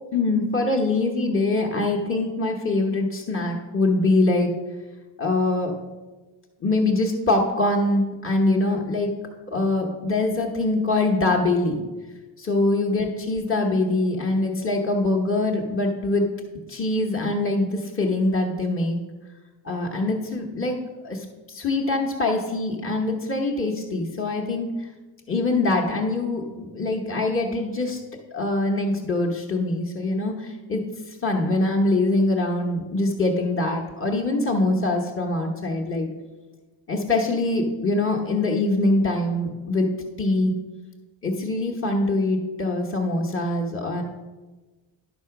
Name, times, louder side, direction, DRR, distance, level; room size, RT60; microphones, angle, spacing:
voice 1, 0.1-4.5 5.2-5.7 6.6-9.1 9.5-11.8 12.4-16.3 16.7-19.0 19.6-20.8 21.0-24.9 25.3-28.0 28.3-36.1 36.9-39.9 40.2-40.5 41.2-44.0, left 2 dB, 25° left, 0 dB, 1.1 m, -23 dB
11.0 x 4.2 x 5.9 m, 1.2 s
cardioid pair, 110°, 49 cm